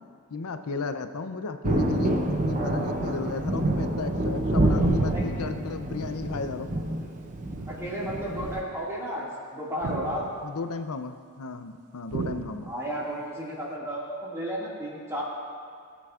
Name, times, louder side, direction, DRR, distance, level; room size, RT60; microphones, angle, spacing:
voice 1, 0.3-6.8 10.4-12.7, left 4 dB, 85° left, 8 dB, 0.6 m, -34 dB
Thunder, 1.6-8.6, right 1 dB, 35° right, 0.8 m, -27 dB
sound 1, 5.9-6.3 7.5-8.2 9.8-10.7 12.1-13.1, right 4 dB, 85° right, 0.5 m, -37 dB
voice 2, 7.7-10.2 12.6-15.2, equal, 15° right, -6 dB, 2.0 m, -33 dB
18.5 x 8.2 x 2.4 m, 2.1 s
head